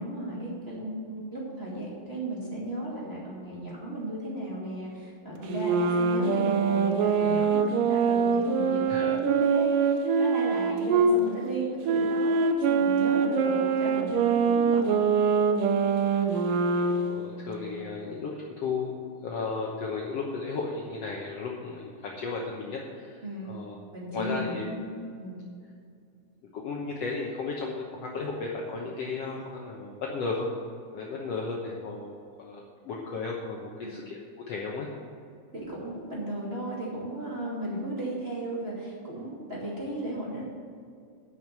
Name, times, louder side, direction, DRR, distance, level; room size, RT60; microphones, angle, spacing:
voice 1, 0.0-15.0 23.2-23.5 23.9-25.5 33.8-33.9 35.5-40.4, right 1 dB, 20° right, -6 dB, 2.2 m, -35 dB
sound 1, 5.5-11.2 11.8-17.2, right 5 dB, 75° right, 2.1 m, -24 dB
voice 2, 16.1-16.4 16.8-23.8 24.1-24.7 26.5-30.5 30.9-34.9, left 4 dB, 85° left, -2 dB, 1.3 m, -35 dB
10.5 x 6.4 x 7.5 m, 2.3 s
omnidirectional pair, 4.4 m